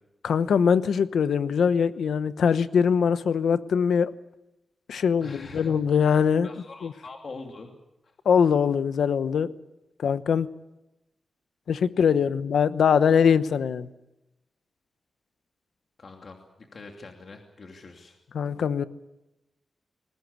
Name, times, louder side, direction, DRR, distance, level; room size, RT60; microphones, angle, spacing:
voice 1, 0.2-4.1 4.9-6.5 6.8-6.9 8.2-9.5 10.0-10.5 11.7-13.9 18.3-18.8, left 7 dB, 85° left, 13 dB, 1.0 m, -22 dB
voice 2, 5.2-5.8 6.4-7.7 8.0-8.1 16.0-18.2, left 3 dB, 55° left, 2 dB, 2.8 m, -44 dB
21.5 x 19.5 x 8.4 m, 0.93 s
cardioid pair, 75°, 0 cm